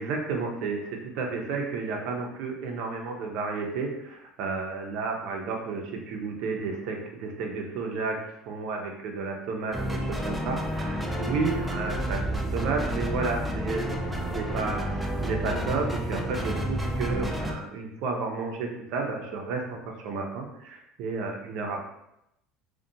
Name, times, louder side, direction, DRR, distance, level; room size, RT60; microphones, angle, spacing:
voice 1, 0.0-8.2 8.5-14.8 15.2-21.8, right 4 dB, 65° right, 1 dB, 0.5 m, -32 dB
sound 1, 9.7-17.5, equal, 10° right, 0.3 m, -30 dB
2.4 x 2.2 x 2.6 m, 0.83 s
supercardioid pair, 125°, 0 cm